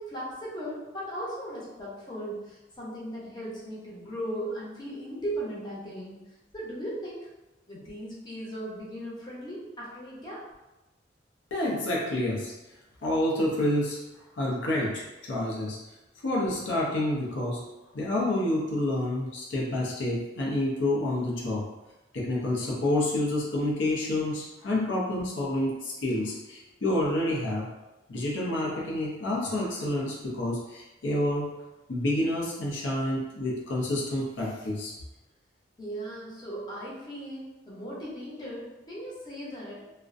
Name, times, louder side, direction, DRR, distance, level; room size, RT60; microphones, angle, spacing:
voice 1, 0.0-6.2 6.5-7.3 7.7-10.4 35.8-39.8, right 1 dB, 25° left, -7 dB, 0.6 m, -37 dB
voice 2, 11.5-12.5 13.0-14.0 14.4-15.8 16.2-17.6 17.9-21.7 22.1-27.7 28.1-31.5 31.9-34.9, left 1 dB, 85° left, -3 dB, 0.5 m, -28 dB
2.4 x 2.1 x 2.5 m, 1.0 s
head